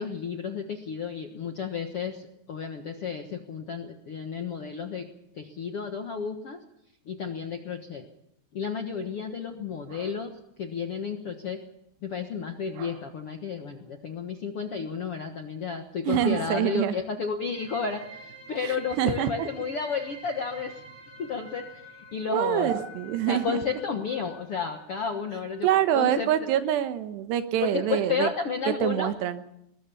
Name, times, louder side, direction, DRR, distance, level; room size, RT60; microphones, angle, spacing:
voice 1, 0.0-5.0 5.3-6.6 7.0-8.0 8.5-10.3 10.6-11.6 12.0-20.8 21.2-22.7 23.3-25.7 25.9-26.5 27.6-29.1, left 6 dB, 70° left, 5 dB, 1.3 m, -32 dB
sound 1, 9.6-10.2 12.4-13.3 13.6-14.0 14.5-14.6 14.9-15.0 15.2-15.3 15.5-17.1 17.3-17.4 17.9-18.2 20.6-20.7 22.2-23.7 24.4-24.8 26.6-26.7 27.1-27.3, right 5 dB, 75° right, 3.5 m, -42 dB
voice 2, 16.1-16.9 18.6-19.5 22.3-23.6 25.6-28.3 28.8-29.4, right 11 dB, 90° right, 10 dB, 3.3 m, -25 dB
sound 2, 17.5-26.8, right 1 dB, 30° left, 5.5 m, -49 dB
21.0 x 20.0 x 7.0 m, 0.79 s
omnidirectional pair, 4.8 m